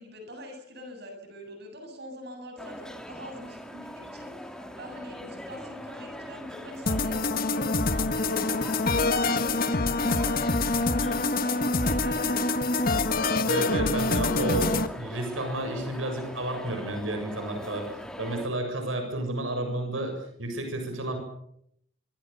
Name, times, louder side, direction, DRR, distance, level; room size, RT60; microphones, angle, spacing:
voice 1, 0.0-7.2 7.5-12.4, left 1 dB, 55° right, 5 dB, 7.7 m, -43 dB
sound 1, 2.6-18.5, equal, 5° left, 2.7 m, -42 dB
sound 2, 6.9-14.9, left 3 dB, 45° left, 1.6 m, -25 dB
voice 2, 13.5-20.1 20.4-21.2, right 1 dB, 80° right, 5 dB, 7.4 m, -31 dB
25.0 x 25.0 x 7.2 m, 0.73 s
head